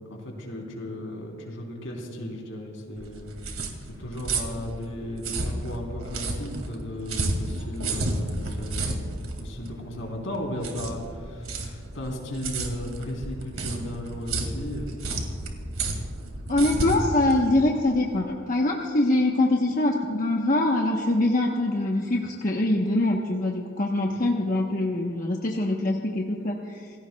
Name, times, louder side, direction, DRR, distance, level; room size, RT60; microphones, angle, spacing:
voice 1, 0.0-3.3 3.8-8.9 9.4-15.0, left 1 dB, 70° left, -1 dB, 3.6 m, -35 dB
sound 1, 3.0-18.2, right 2 dB, 85° right, 2.3 m, -32 dB
voice 2, 16.5-26.5, left 2 dB, 40° left, -1 dB, 1.0 m, -23 dB
28.5 x 16.0 x 2.3 m, 2.3 s
head